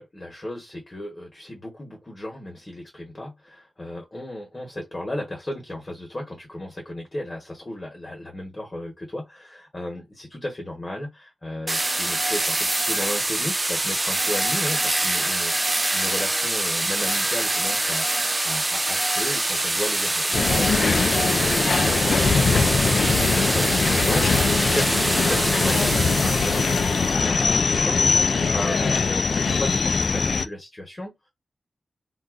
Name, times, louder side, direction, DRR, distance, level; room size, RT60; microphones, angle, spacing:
voice 1, 0.0-31.3, left 1 dB, 30° left, 1.0 m, -35 dB
sound 1, 11.7-27.1, right 2 dB, 20° right, 0.4 m, -24 dB
sound 2, 20.3-30.5, left 4 dB, 65° left, 0.3 m, -22 dB
3.8 x 2.3 x 2.4 m
wide cardioid pair, 135°, 0 cm